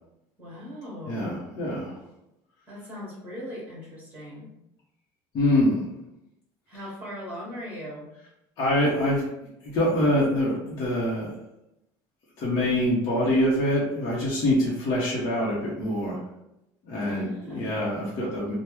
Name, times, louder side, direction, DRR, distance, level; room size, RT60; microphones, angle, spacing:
voice 1, 0.4-1.3 2.7-4.5 6.7-8.1 17.0-17.8, left 1 dB, 20° right, -6 dB, 1.3 m, -39 dB
voice 2, 1.1-2.0 5.3-5.8 8.6-9.2 9.6-11.3 12.4-16.2 16.8-18.5, left 1 dB, 45° left, -7 dB, 0.8 m, -25 dB
3.0 x 2.1 x 3.3 m, 0.86 s
cardioid pair, 155°, 9 cm